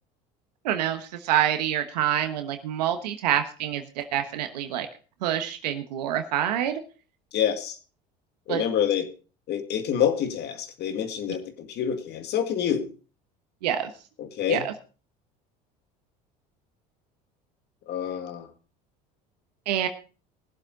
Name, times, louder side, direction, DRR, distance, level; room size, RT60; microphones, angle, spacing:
voice 1, 0.6-4.9 5.2-6.8 8.5-8.6 13.6-13.9 14.5-14.7 19.7-19.9, right 11 dB, 90° right, 7 dB, 1.2 m, -26 dB
voice 2, 7.3-7.8 8.5-9.1 9.5-12.9 14.2-14.7 17.9-18.5, left 9 dB, 55° left, 7 dB, 2.2 m, -27 dB
19.5 x 7.8 x 3.9 m, 0.36 s
supercardioid pair, 80°, 20 cm